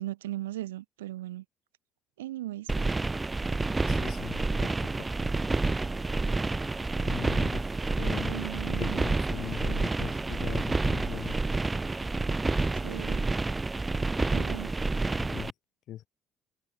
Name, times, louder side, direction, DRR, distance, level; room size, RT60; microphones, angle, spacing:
voice 1, 0.0-1.4 2.2-2.7 8.3-9.1 12.8-13.3 14.3-14.7, right 15 dB, 80° right, 5.6 m, -37 dB
sound 1, 2.7-15.5, right 3 dB, 20° right, 3.7 m, -29 dB
voice 2, 3.9-5.1 7.0-7.6 8.0-8.5 8.8-11.4 15.2-15.5 15.9-16.1, left 12 dB, 60° left, 4.3 m, -40 dB
figure-of-eight pair, 50°, 0 cm